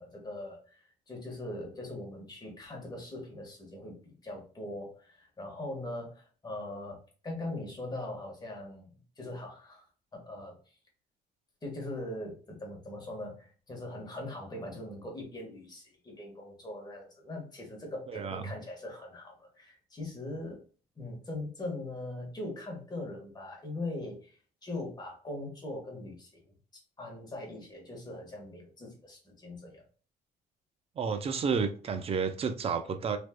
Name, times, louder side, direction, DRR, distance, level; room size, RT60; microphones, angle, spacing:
voice 1, 0.0-8.9 9.2-9.8 10.1-10.7 11.6-20.6 21.0-26.5 27.0-29.8, left 1 dB, 25° left, 1.4 m, -41 dB
voice 2, 18.1-18.4 31.0-33.2, right 5 dB, 35° right, 0.5 m, -31 dB
3.4 x 2.9 x 2.2 m
cardioid pair, 110°, 17 cm